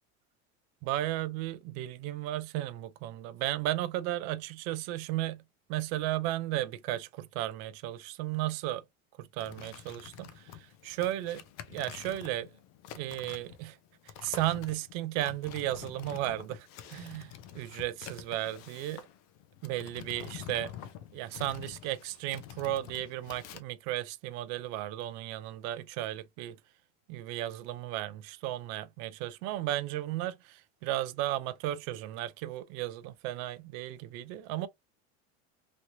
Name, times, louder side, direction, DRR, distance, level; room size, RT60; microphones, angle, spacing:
voice 1, 0.8-5.4 5.7-8.8 9.2-11.4 11.7-12.5 12.9-13.8 14.2-19.0 19.6-20.7 21.1-26.6 27.1-34.7, right 14 dB, 50° right, 0.4 m, -34 dB
sound 1, 9.4-23.6, left 10 dB, 50° left, 0.6 m, -47 dB
3.0 x 3.0 x 2.6 m
supercardioid pair, 155°, 35 cm